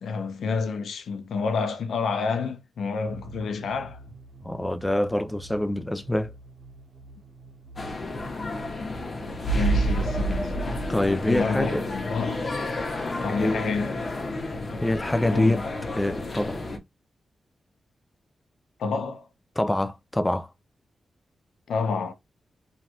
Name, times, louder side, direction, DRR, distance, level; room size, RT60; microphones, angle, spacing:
voice 1, 0.0-4.0 9.5-10.6 11.3-12.5 13.2-14.0 15.3-15.6 18.8-19.3 21.7-22.1, left 5 dB, 90° left, 0.6 m, -29 dB
sound 1, 3.0-16.7, right 2 dB, 60° right, 1.4 m, -48 dB
voice 2, 4.4-6.3 9.5-9.6 10.9-11.9 13.3-13.6 14.8-15.6 15.9-16.6 19.6-20.5, left 1 dB, 10° left, 0.3 m, -25 dB
sound 2, 7.8-16.8, equal, 40° left, 0.9 m, -30 dB
3.1 x 2.3 x 2.9 m
wide cardioid pair, 95°, 0 cm